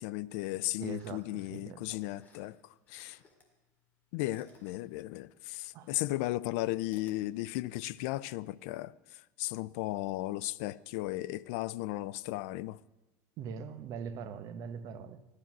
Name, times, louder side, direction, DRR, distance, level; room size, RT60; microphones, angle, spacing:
voice 1, 0.0-2.6 2.9-3.2 4.1-8.9 9.4-12.8, left 17 dB, 60° left, 0.5 m, -35 dB
voice 2, 0.8-1.9 5.7-5.9 13.4-15.2, right 7 dB, 40° right, 1.0 m, -42 dB
sound 1, 0.9-1.5 1.8-3.5 3.8-7.2, left 3 dB, 20° left, 2.1 m, -61 dB
16.0 x 11.5 x 6.0 m
cardioid pair, 165°, 9 cm